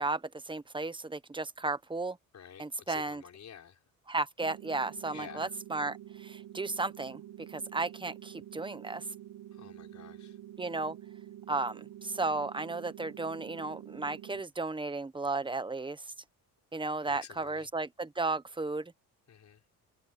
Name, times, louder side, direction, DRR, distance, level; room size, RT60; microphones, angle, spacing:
voice 1, 0.0-2.2 2.6-3.2 4.1-9.0 10.6-11.0 11.5-16.1 16.7-18.9, right 3 dB, 15° right, 1.1 m, -34 dB
voice 2, 2.3-3.8 5.1-5.5 9.5-10.4 17.0-17.7 19.3-19.6, left 8 dB, 50° left, 5.6 m, -50 dB
sound 1, 4.4-14.4, right 12 dB, 50° right, 1.2 m, -48 dB
cardioid pair, 100°, 36 cm